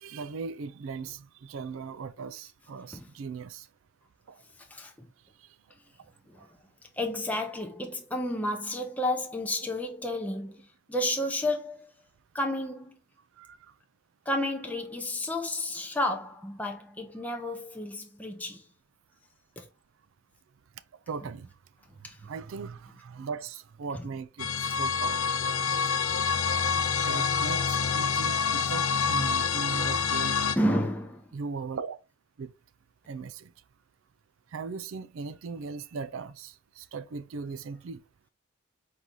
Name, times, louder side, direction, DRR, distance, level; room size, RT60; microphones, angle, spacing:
voice 1, 0.0-3.7 4.3-4.4 6.4-6.5 13.4-13.6 21.1-21.5 22.2-25.2 27.0-30.4 31.3-32.0 32.4-32.5 33.1-33.5 34.5-38.0, right 5 dB, 70° right, 0.4 m, -38 dB
voice 2, 4.7-5.1 6.3-6.4 7.0-11.9 12.3-13.0 14.3-18.6 19.6-19.7 22.0-22.2 23.9-24.0 30.6-31.3, left 1 dB, 5° left, 0.6 m, -31 dB
sound 1, 24.4-30.6, left 6 dB, 80° left, 0.5 m, -27 dB
4.6 x 2.8 x 3.7 m
head